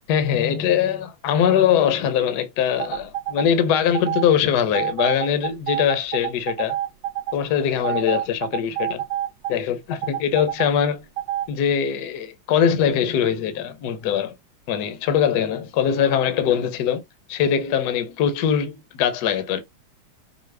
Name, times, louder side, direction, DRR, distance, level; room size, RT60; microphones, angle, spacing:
voice 1, 0.1-6.8 7.3-9.0 9.5-11.0 11.5-14.3 14.7-17.0 17.3-19.6, left 8 dB, 65° left, 1.1 m, -22 dB
sound 1, 2.8-3.5 3.9-4.3 4.7-7.4 7.8-9.5 10.0-10.7 11.2-11.5, right 12 dB, 70° right, 1.2 m, -27 dB
4.9 x 2.3 x 3.3 m
omnidirectional pair, 2.3 m